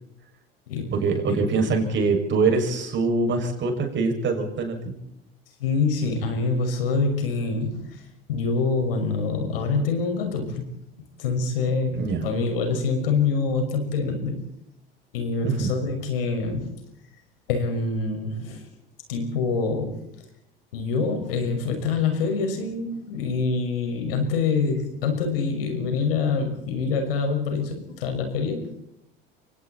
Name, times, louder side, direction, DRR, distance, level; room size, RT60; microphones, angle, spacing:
voice 1, 0.9-4.9 11.9-12.3 15.4-15.7, right 4 dB, 40° right, 3 dB, 6.9 m, -24 dB
voice 2, 5.6-7.8 8.3-10.7 11.2-14.4 15.1-16.7 17.5-18.6 19.1-19.9 20.7-28.7, left 4 dB, 70° left, 5 dB, 5.9 m, -25 dB
29.0 x 24.5 x 4.4 m, 0.79 s
figure-of-eight pair, 70°, 29 cm